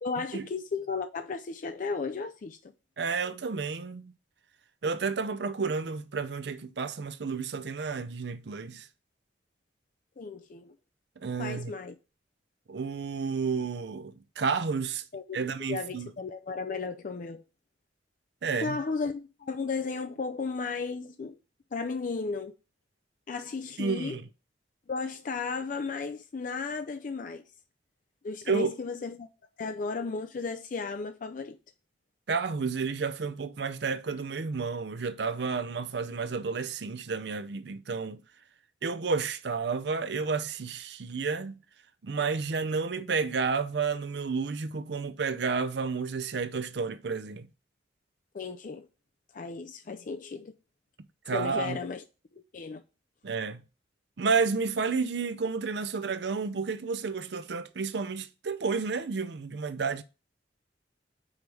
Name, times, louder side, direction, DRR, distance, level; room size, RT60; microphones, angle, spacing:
voice 1, 0.0-2.7 10.2-10.7 11.4-11.9 15.1-15.4 15.7-17.4 18.6-21.4 21.7-22.5 23.3-24.2 24.9-27.4 28.2-29.3 29.6-31.6 48.3-48.9 49.3-50.5 51.3-52.0 52.3-52.8, left 4 dB, 45° left, 0.4 m, -34 dB
voice 2, 3.0-4.1 4.8-8.9 11.2-11.7 12.7-15.0 15.3-16.1 18.4-18.8 23.8-24.3 28.5-28.7 32.3-38.2 38.8-41.6 42.0-47.5 51.3-51.8 53.2-53.6 54.2-60.0, right 5 dB, 65° right, 0.5 m, -31 dB
5.0 x 4.7 x 5.3 m
head